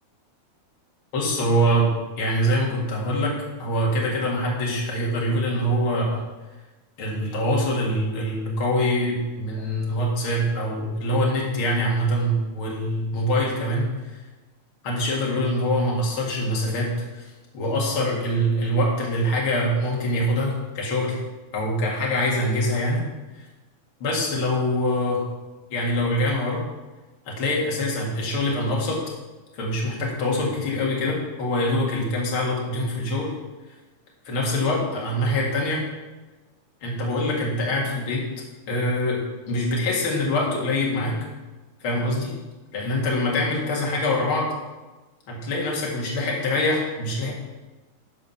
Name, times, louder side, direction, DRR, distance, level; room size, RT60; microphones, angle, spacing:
voice 1, 1.1-1.9 2.2-3.3 3.6-6.2 7.0-13.9 14.8-17.2 17.5-21.2 21.5-23.0 24.0-25.2 25.7-26.6 27.3-29.0 29.5-33.3 34.3-35.8 36.8-38.2 38.7-39.2 39.5-41.2 41.8-42.4 42.7-44.5 45.3-47.3, equal, 50° left, -3 dB, 2.7 m, -24 dB
13.0 x 5.0 x 5.5 m, 1.2 s
omnidirectional pair, 3.4 m